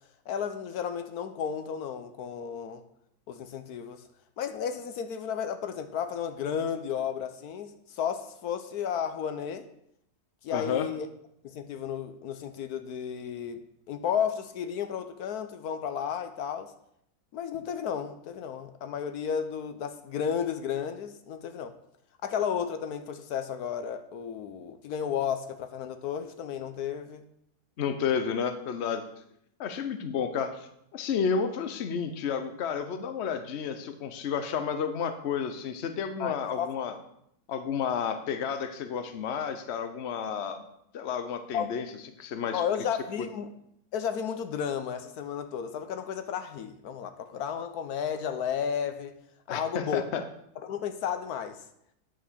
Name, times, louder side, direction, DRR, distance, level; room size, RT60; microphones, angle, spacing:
voice 1, 0.3-2.8 3.3-4.0 4.4-9.7 10.4-11.1 11.4-16.7 17.3-21.8 22.2-27.2 36.2-36.8 41.5-41.7 42.5-43.5 43.9-49.2 49.5-50.0 50.6-51.6, left 8 dB, 80° left, 1.2 m, -33 dB
voice 2, 10.5-10.9 27.8-29.0 29.6-30.6 30.9-37.0 37.5-40.6 40.9-41.8 42.2-42.6 49.5-50.2, left 6 dB, 50° left, 1.1 m, -31 dB
9.3 x 6.2 x 6.3 m
omnidirectional pair, 1.6 m